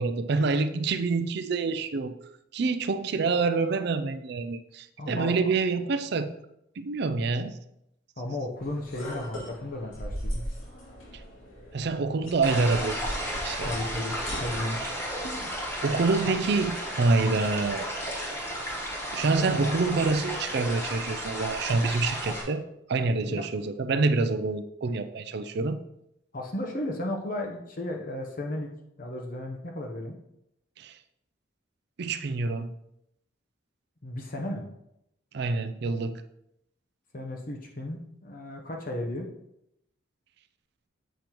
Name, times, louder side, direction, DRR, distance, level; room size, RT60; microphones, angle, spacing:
voice 1, 0.0-2.1 2.5-6.3 6.8-7.6 11.7-13.0 13.4-13.7 15.8-17.9 19.1-22.6 22.9-25.8 30.8-31.0 32.0-32.7 35.3-36.2, right 3 dB, 55° right, 11 dB, 0.4 m, -26 dB
voice 2, 5.0-5.5 8.2-10.5 13.6-14.8 23.3-23.4 26.3-28.7 29.0-30.2 34.0-34.7 37.1-39.3, left 1 dB, 45° left, 2 dB, 0.7 m, -34 dB
sound 1, 8.6-15.7, equal, 90° left, 2.6 m, -39 dB
sound 2, 12.4-22.4, equal, 15° left, 1.2 m, -33 dB
7.6 x 5.1 x 3.0 m, 0.82 s
head